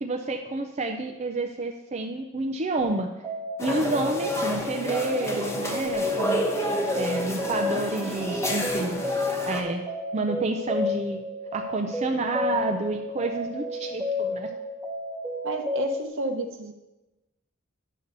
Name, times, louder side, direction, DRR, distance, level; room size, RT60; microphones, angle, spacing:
voice 1, 0.0-3.1 3.6-6.5 6.9-9.8 10.1-11.2 11.5-14.5, right 2 dB, 30° right, 4 dB, 0.5 m, -29 dB
sound 1, 2.8-16.1, left 2 dB, 10° right, 0.8 m, -32 dB
sound 2, 3.6-9.6, equal, 15° left, 1.0 m, -30 dB
voice 2, 15.4-16.7, right 2 dB, 65° right, 6 dB, 0.9 m, -31 dB
9.4 x 6.7 x 4.0 m, 1.0 s
head